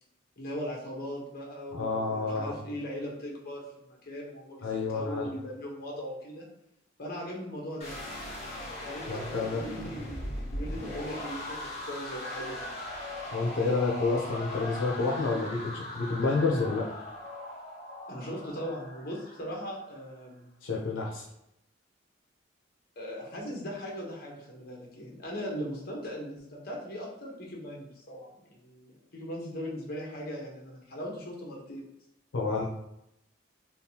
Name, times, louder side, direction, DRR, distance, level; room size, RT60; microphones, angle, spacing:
voice 1, 0.4-6.5 7.0-7.9 8.8-12.7 18.1-20.5 23.0-31.9, equal, 50° left, -2 dB, 1.0 m, -39 dB
voice 2, 1.7-2.5 4.6-5.2 9.1-9.6 13.3-16.8 20.6-21.2 32.3-32.6, left 3 dB, 80° left, -2 dB, 0.6 m, -29 dB
sound 1, 7.8-19.8, left 1 dB, 35° left, 1.3 m, -39 dB
3.5 x 2.3 x 2.8 m, 0.82 s
head